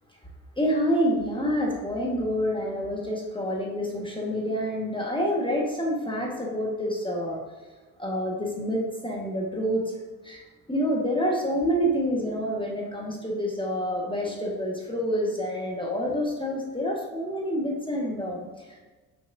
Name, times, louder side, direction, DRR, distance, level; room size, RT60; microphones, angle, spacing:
voice 1, 0.6-7.4 8.0-9.9 10.2-18.8, equal, 10° left, -2 dB, 1.6 m, -28 dB
6.4 x 6.0 x 2.7 m, 1.2 s
hypercardioid pair, 50°, 47 cm